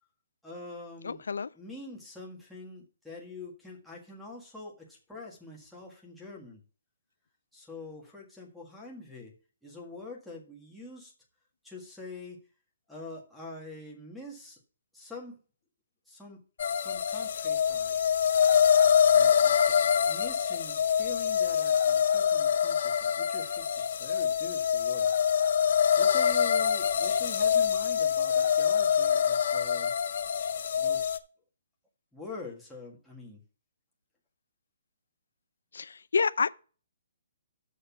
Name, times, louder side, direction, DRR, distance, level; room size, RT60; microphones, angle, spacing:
voice 1, 0.4-1.2 1.5-6.6 7.5-11.1 11.6-12.4 12.9-14.6 14.9-15.4 16.1-16.4 16.7-18.0 19.1-25.1 26.0-29.9 30.7-31.2 32.1-33.4, left 3 dB, ahead, 1.7 m, -45 dB
voice 2, 1.0-1.5 35.7-36.5, left 5 dB, 85° left, 0.4 m, -28 dB
sound 1, 16.6-31.2, left 8 dB, 50° left, 0.6 m, -25 dB
6.6 x 6.4 x 5.8 m
hypercardioid pair, 170°, 0 cm